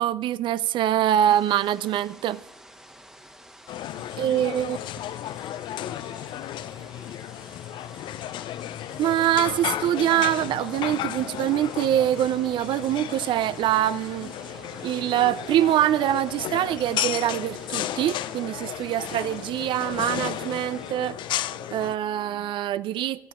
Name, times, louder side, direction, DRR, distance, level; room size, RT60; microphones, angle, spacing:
voice 1, 0.0-2.4 4.2-4.8 9.0-14.3 14.8-21.2 21.7-23.3, right 12 dB, 50° right, 0.3 m, -24 dB
sound 1, 1.3-20.9, right 1 dB, 5° right, 1.1 m, -49 dB
sound 2, 3.7-22.0, left 12 dB, 50° left, 0.4 m, -34 dB
voice 2, 3.8-8.1, left 9 dB, 70° left, 1.0 m, -48 dB
sound 3, 8.8-22.4, right 5 dB, 85° right, 0.9 m, -47 dB
21.0 x 14.0 x 2.4 m
hypercardioid pair, 60°, 11 cm